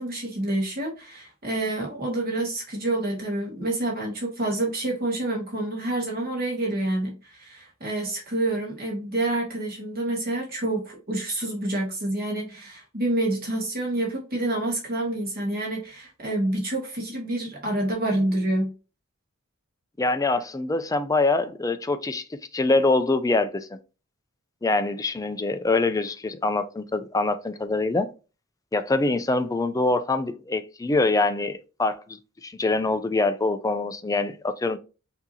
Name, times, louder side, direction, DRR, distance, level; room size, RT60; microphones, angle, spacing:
voice 1, 0.0-18.7, right 1 dB, 45° right, 1.7 m, -28 dB
voice 2, 20.0-22.2 22.5-23.8 24.6-28.1 28.7-34.8, left 3 dB, 15° left, 0.4 m, -24 dB
6.0 x 2.8 x 2.8 m
head